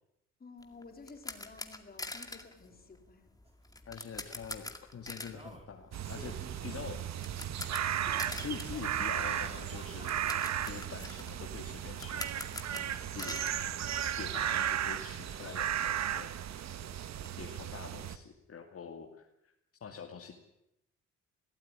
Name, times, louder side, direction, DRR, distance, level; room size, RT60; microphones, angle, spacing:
voice 1, 0.4-3.3, left 3 dB, 30° left, 4 dB, 4.2 m, -52 dB
sound 1, 0.6-14.6 14.8-15.0 15.4-15.5 15.7-17.3, left 2 dB, 10° left, 2.2 m, -46 dB
Singing, 3.5-3.6 4.6-4.7 5.3-6.9 7.4-7.5 7.9-10.5 11.3-11.4, right 1 dB, 20° right, 4.2 m, -53 dB
voice 2, 3.9-7.0 8.2-10.1 10.6-12.3 12.7-13.4 14.2-16.3 17.4-19.5 19.8-20.3, left 6 dB, 50° left, 2 dB, 2.4 m, -45 dB
sound 2, 5.9-18.2, right 10 dB, 65° right, 1.3 m, -35 dB
21.5 x 14.5 x 9.9 m, 0.85 s
cardioid pair, 90°, 30 cm